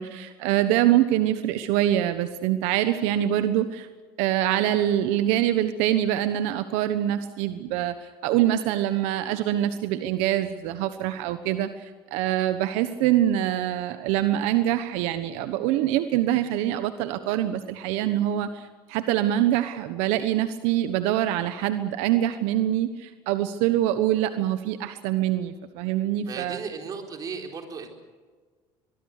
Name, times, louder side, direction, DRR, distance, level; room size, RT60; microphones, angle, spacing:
voice 1, 0.0-3.9 4.2-26.6, right 12 dB, 75° right, 10 dB, 1.2 m, -24 dB
voice 2, 26.3-27.9, right 5 dB, 35° right, 3 dB, 4.2 m, -35 dB
23.0 x 22.0 x 6.7 m, 1.5 s
cardioid pair, 135°, 11 cm